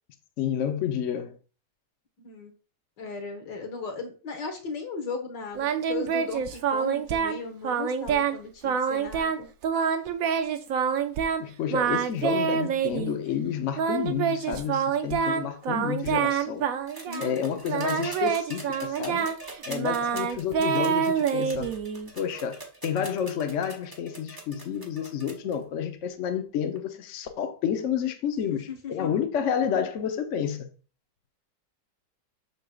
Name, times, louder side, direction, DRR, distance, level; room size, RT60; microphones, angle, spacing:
voice 1, 0.4-1.4 11.4-16.6 17.2-19.3 19.7-21.7 22.1-22.6 22.8-30.7, left 8 dB, 55° left, 0.9 m, -30 dB
voice 2, 3.0-9.5 17.1-17.6 20.1-20.3 28.5-29.1, left 4 dB, 75° left, 1.9 m, -37 dB
Singing, 5.6-7.4 7.6-8.4 8.6-11.4 11.7-13.2 13.8-17.4 17.7-22.1, right 7 dB, 65° right, 0.9 m, -27 dB
sound 1, 16.9-25.5 26.7-26.8, right 2 dB, 15° right, 0.8 m, -43 dB
6.8 x 6.2 x 2.4 m
omnidirectional pair, 1.9 m